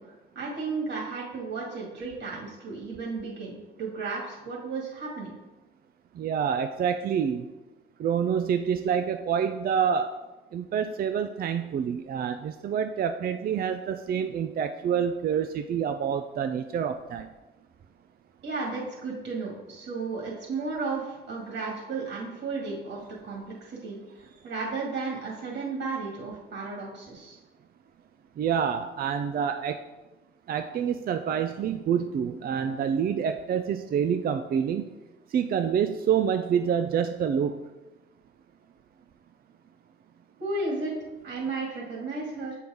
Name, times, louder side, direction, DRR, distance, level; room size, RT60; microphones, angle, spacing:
voice 1, 0.0-5.3 18.4-27.4 40.4-40.9 41.2-42.6, right 3 dB, 70° right, -3 dB, 2.1 m, -34 dB
voice 2, 6.2-7.5 8.0-10.1 10.5-17.3 28.4-29.8 30.5-34.8 35.3-37.6, right 7 dB, 50° right, 8 dB, 0.4 m, -27 dB
6.9 x 4.6 x 5.0 m, 1.1 s
cardioid pair, 90°, 20 cm